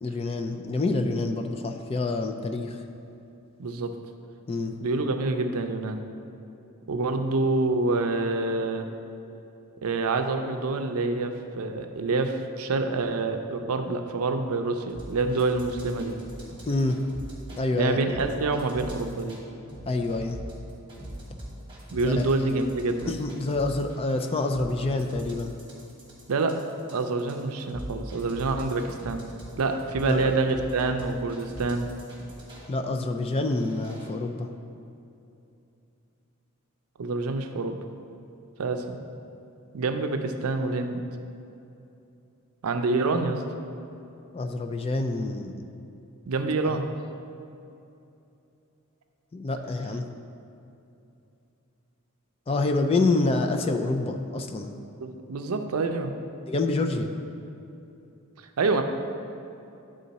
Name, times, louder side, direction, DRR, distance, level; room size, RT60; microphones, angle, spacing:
voice 1, 0.0-2.8 4.5-4.8 16.7-17.0 17.5-18.2 19.9-20.4 22.0-22.6 23.1-25.5 30.0-30.3 32.7-34.5 44.3-45.6 46.6-46.8 49.3-50.1 52.5-54.7 56.4-57.1, left 2 dB, 25° left, 5 dB, 0.3 m, -27 dB
voice 2, 3.6-3.9 4.8-6.0 6.9-8.9 9.8-16.1 17.7-19.4 21.9-23.1 26.3-26.6 26.9-29.2 29.6-31.9 37.0-37.8 38.6-39.0 39.7-41.0 42.6-43.4 46.3-46.8 55.0-56.1 58.6-58.8, right 3 dB, 85° right, 6 dB, 0.5 m, -27 dB
sound 1, 14.9-17.6 18.1-19.4 19.7-32.7 33.3-34.1, right 1 dB, 25° right, 1.3 m, -42 dB
9.4 x 3.8 x 4.0 m, 2.8 s
head